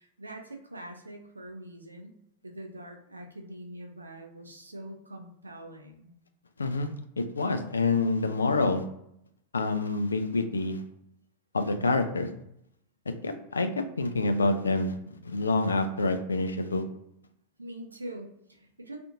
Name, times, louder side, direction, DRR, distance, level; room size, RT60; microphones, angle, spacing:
voice 1, 0.0-6.1 17.6-19.0, right 1 dB, 80° right, 3 dB, 0.5 m, -44 dB
voice 2, 7.2-8.8 9.5-10.8 11.5-12.3 13.1-13.7 14.0-14.9 15.2-16.8, left 3 dB, 75° left, 7 dB, 0.3 m, -27 dB
2.5 x 2.4 x 2.7 m, 0.76 s
figure-of-eight pair, 90°, 0 cm